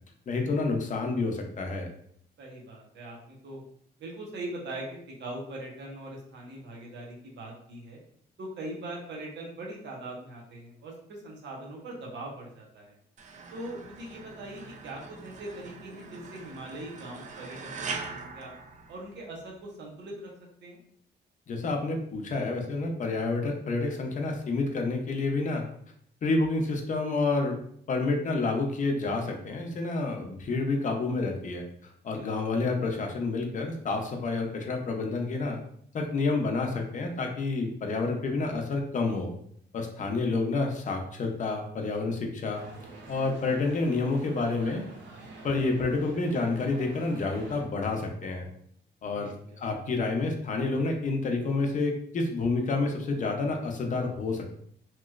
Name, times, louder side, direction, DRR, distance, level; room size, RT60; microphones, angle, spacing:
voice 1, 0.3-1.9 21.5-25.6 26.2-27.6 27.9-31.7 32.0-35.6 35.9-39.3 39.7-42.6 43.1-44.8 45.4-48.5 49.0-49.3 49.6-54.6, left 3 dB, 40° left, 3 dB, 0.6 m, -29 dB
voice 2, 2.4-3.6 4.0-8.0 8.4-13.0 13.5-17.7 18.1-18.5 18.9-20.3 20.6-20.8 32.1-32.5 40.1-40.4 49.1-49.6, right 1 dB, 70° right, -2 dB, 1.0 m, -41 dB
sound 1, 13.2-19.5, right 4 dB, 40° right, 0.4 m, -42 dB
sound 2, 42.5-47.6, right 3 dB, 90° right, 0.7 m, -46 dB
3.0 x 2.9 x 2.4 m, 0.64 s
cardioid pair, 130°, 19 cm